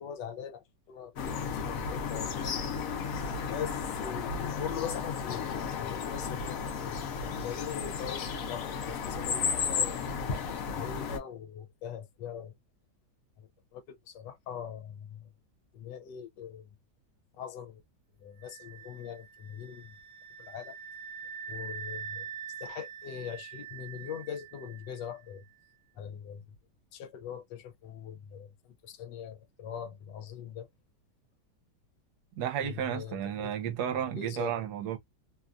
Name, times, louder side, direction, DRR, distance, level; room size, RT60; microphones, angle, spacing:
voice 1, 0.0-2.6 3.5-5.5 5.7-12.5 13.4-15.3 15.7-16.8 17.4-17.8 18.2-20.0 20.4-20.7 21.5-22.3 22.6-25.4 26.0-26.6 26.9-30.7 32.6-33.5 33.9-34.6, left 8 dB, 85° left, 1.3 m, -42 dB
sound 1, 1.2-11.2, left 6 dB, 65° left, 1.0 m, -34 dB
sound 2, 18.4-25.2, right 7 dB, 50° right, 1.0 m, -44 dB
voice 2, 32.4-35.0, right 10 dB, 70° right, 1.1 m, -33 dB
3.0 x 2.3 x 2.4 m
omnidirectional pair, 1.8 m